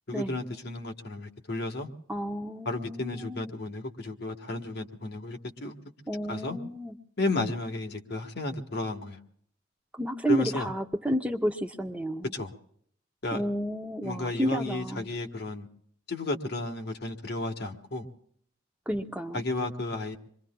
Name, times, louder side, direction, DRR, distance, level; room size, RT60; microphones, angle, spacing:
voice 1, 0.1-1.9 2.6-5.8 6.3-6.6 7.2-9.2 10.3-10.7 12.3-12.5 13.2-13.4 14.0-15.7 16.1-18.1 19.3-20.2, left 2 dB, 60° left, 1.3 m, -33 dB
voice 2, 2.1-3.5 6.1-7.0 9.9-12.3 13.3-15.1 18.9-19.4, equal, 5° right, 0.6 m, -31 dB
27.0 x 23.0 x 2.2 m
head